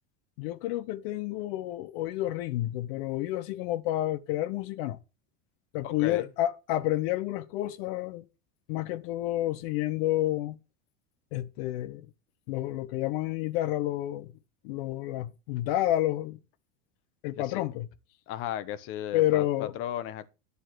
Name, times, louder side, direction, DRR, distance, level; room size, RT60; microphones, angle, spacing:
voice 1, 0.4-5.0 5.7-8.2 8.7-10.6 11.3-12.1 12.5-14.3 14.6-16.4 17.2-17.9 19.1-19.7, left 14 dB, 60° left, 1.1 m, -30 dB
voice 2, 5.8-6.3 17.4-17.6 18.3-20.3, left 11 dB, 40° left, 0.9 m, -35 dB
10.5 x 4.2 x 6.3 m
supercardioid pair, 165°, 34 cm